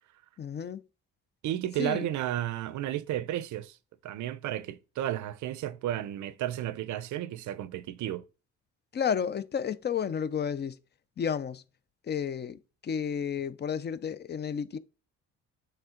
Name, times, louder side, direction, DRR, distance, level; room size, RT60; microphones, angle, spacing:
voice 1, 0.4-0.8 1.8-2.1 8.9-10.8 11.2-11.6 12.0-14.8, left 7 dB, 35° left, 0.5 m, -32 dB
voice 2, 1.4-3.8 4.0-8.2, right 12 dB, 75° right, 0.6 m, -33 dB
7.9 x 3.6 x 3.7 m
cardioid pair, 90°, 30 cm